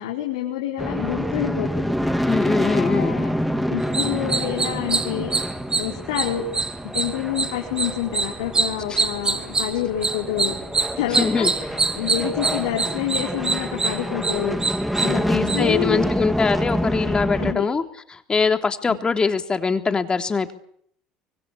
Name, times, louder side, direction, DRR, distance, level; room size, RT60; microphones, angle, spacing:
voice 1, 0.0-1.9 2.6-3.3 3.7-5.3 5.8-6.5 6.8-10.6 10.9-14.6 15.0-16.1 17.3-17.6 18.9-19.0, left 11 dB, 80° left, 1 dB, 4.6 m, -28 dB
sound 1, 0.8-17.5, equal, ahead, 3.3 m, -27 dB
voice 2, 2.3-3.2 8.9-9.0 11.1-11.5 15.1-17.8 18.1-20.5, left 4 dB, 25° left, 7 dB, 3.5 m, -22 dB
sound 2, 3.8-15.9, right 4 dB, 25° right, 4.4 m, -26 dB
25.5 x 23.0 x 8.6 m, 0.67 s
hypercardioid pair, 75°, 3 cm